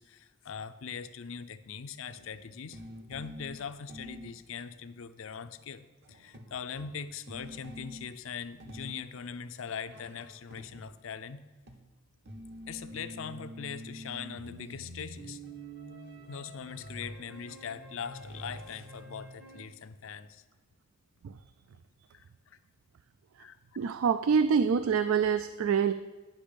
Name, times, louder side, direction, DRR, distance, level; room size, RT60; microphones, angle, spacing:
voice 1, 0.0-2.8 3.1-11.4 12.7-15.4 16.3-20.4 22.1-22.6 23.4-23.6, left 6 dB, 75° left, 11 dB, 0.5 m, -41 dB
sound 1, 1.8-4.4 5.0-5.1 5.3-5.7 6.0-8.3 8.6-9.2 9.9-11.1 11.6-19.7, equal, 55° right, 0.9 m, -47 dB
voice 2, 23.8-25.9, right 6 dB, 90° right, 12 dB, 0.4 m, -26 dB
10.0 x 6.2 x 5.1 m, 1.3 s
head